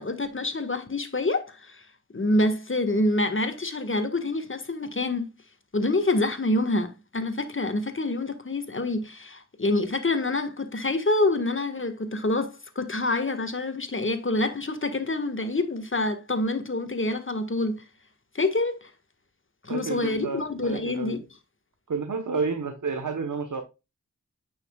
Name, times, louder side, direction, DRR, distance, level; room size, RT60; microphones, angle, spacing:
voice 1, 0.0-1.9 2.1-5.3 5.7-17.8 18.3-18.9 19.6-21.2, left 2 dB, 40° left, 1.7 m, -27 dB
voice 2, 19.7-21.1 21.9-23.6, right 4 dB, 85° right, 1.2 m, -30 dB
9.1 x 6.3 x 2.4 m
cardioid pair, 45°, 30 cm